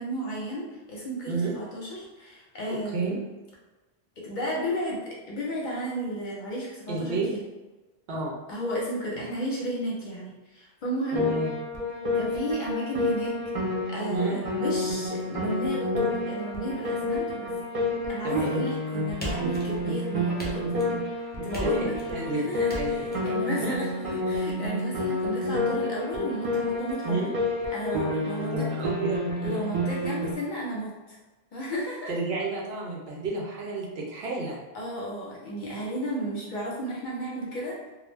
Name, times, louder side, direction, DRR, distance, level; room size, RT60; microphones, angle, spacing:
voice 1, 0.0-3.3 4.2-7.4 8.5-11.3 12.1-13.4 13.6-17.5 18.1-20.6 21.4-22.0 22.3-27.3 27.7-28.7 29.4-31.2 31.5-32.1 34.7-37.8, equal, 55° left, -4 dB, 0.7 m, -33 dB
voice 2, 2.7-3.2 6.9-7.3 8.1-8.4 11.1-11.6 14.1-14.4 18.2-18.7 21.6-23.7 27.0-27.3 28.4-29.3 32.1-34.6, right 3 dB, 70° right, -2 dB, 0.8 m, -31 dB
Piano, 11.2-30.3, left 1 dB, 45° right, 0.5 m, -29 dB
sound 1, 19.2-20.0 20.4-21.0 21.5-22.2 22.7-23.2, left 1 dB, 15° left, 0.3 m, -37 dB
2.4 x 2.0 x 3.2 m, 1.2 s
omnidirectional pair, 1.1 m